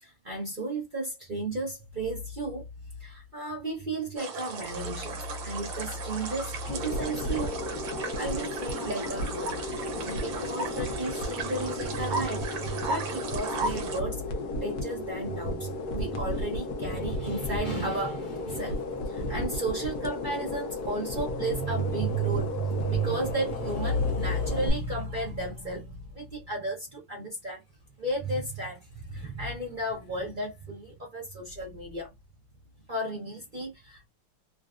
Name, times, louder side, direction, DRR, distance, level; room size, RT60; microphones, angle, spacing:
voice 1, 0.0-2.7 3.0-7.6 8.2-14.2 14.6-27.6 28.0-32.1 32.9-34.1, right 2 dB, 45° right, 0.6 m, -33 dB
sound 1, 4.2-14.0, right 4 dB, 65° right, 1.5 m, -36 dB
sound 2, 5.0-24.7, left 2 dB, 60° left, 1.0 m, -34 dB
3.9 x 2.2 x 2.4 m
omnidirectional pair, 2.4 m